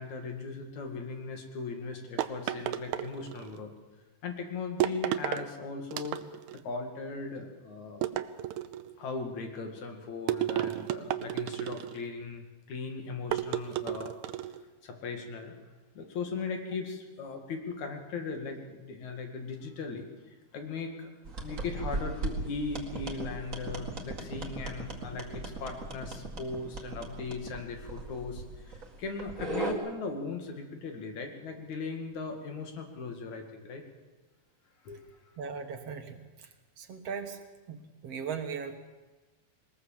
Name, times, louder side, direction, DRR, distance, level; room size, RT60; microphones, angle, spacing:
voice 1, 0.0-3.7 4.2-6.2 6.6-8.1 9.0-14.1 14.8-15.5 16.0-20.1 20.5-21.1 21.4-33.8 34.8-35.1, left 4 dB, 75° left, 4 dB, 3.6 m, -38 dB
sound 1, 2.2-3.6 4.8-5.5 5.9-6.6 8.0-8.9 10.3-12.1 13.3-14.6, right 12 dB, 80° right, 2.1 m, -32 dB
sound 2, 21.2-29.7, right 2 dB, 30° right, 2.2 m, -38 dB
voice 2, 35.4-36.2 36.8-37.4 37.7-38.8, right 6 dB, 60° right, 6 dB, 2.2 m, -38 dB
20.5 x 20.0 x 7.4 m, 1.2 s
omnidirectional pair, 3.4 m